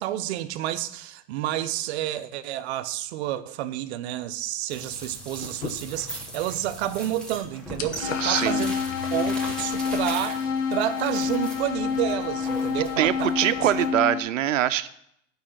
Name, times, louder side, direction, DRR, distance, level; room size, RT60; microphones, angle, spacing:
voice 1, 0.0-8.7 9.1-13.3 13.6-13.9, right 13 dB, 60° right, 0.7 m, -30 dB
sound 1, 4.7-13.9, right 1 dB, ahead, 1.5 m, -39 dB
sound 2, 5.4-6.4 6.7-7.0 7.3-9.4, left 6 dB, 75° left, 1.2 m, -36 dB
sound 3, 8.0-14.2, left 6 dB, 55° left, 2.6 m, -28 dB
voice 2, 8.2-8.6 10.2-10.3 13.0-14.9, right 12 dB, 90° right, 0.6 m, -23 dB
8.7 x 5.6 x 5.8 m
hypercardioid pair, 125°, 37 cm